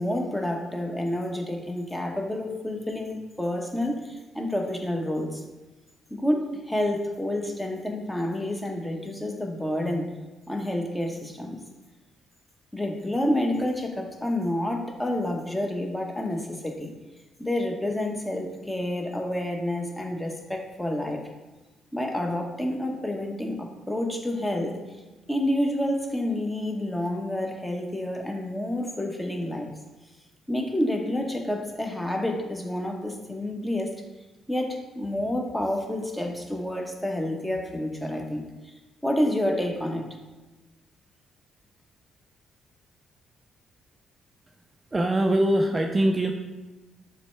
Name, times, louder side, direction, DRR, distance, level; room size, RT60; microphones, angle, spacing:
voice 1, 0.0-5.4 6.1-10.1 10.5-11.6 12.7-16.9 17.4-21.2 21.9-24.8 25.3-29.7 30.5-34.0 34.5-38.7 39.0-40.1, left 1 dB, 10° left, 2 dB, 1.0 m, -29 dB
voice 2, 44.9-46.3, right 1 dB, 20° right, 4 dB, 0.4 m, -22 dB
6.9 x 3.2 x 4.4 m, 1.2 s
cardioid pair, 90°, 0 cm